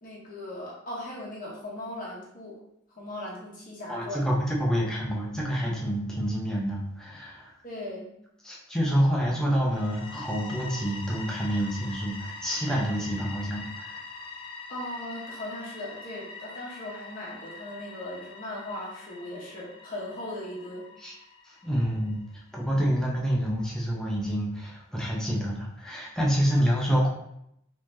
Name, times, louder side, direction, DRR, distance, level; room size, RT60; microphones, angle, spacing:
voice 1, 0.0-2.6 3.0-4.3 7.6-8.1 14.7-20.9, left 1 dB, 40° left, -5 dB, 1.1 m, -38 dB
voice 2, 3.9-7.5 8.4-14.0 21.0-21.1 21.5-22.2 22.5-27.1, equal, 5° left, -4 dB, 0.7 m, -27 dB
sound 1, 9.6-22.3, left 3 dB, 25° left, 0.3 m, -44 dB
4.0 x 3.1 x 2.7 m, 0.76 s
head